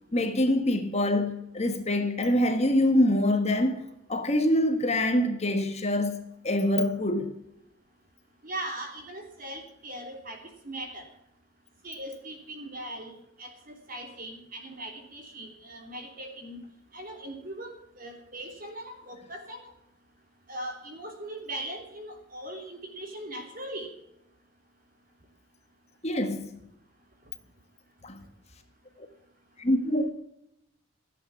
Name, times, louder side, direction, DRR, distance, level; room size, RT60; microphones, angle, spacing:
voice 1, 0.1-7.3 26.0-26.6 28.0-28.2 29.0-29.1 29.6-30.1, left 1 dB, 30° left, 1.4 m, -25 dB
voice 2, 8.4-11.1 11.8-13.1 13.4-16.6 16.9-19.7 20.5-23.9, right 1 dB, 40° right, 3.4 m, -40 dB
15.0 x 8.5 x 7.2 m
head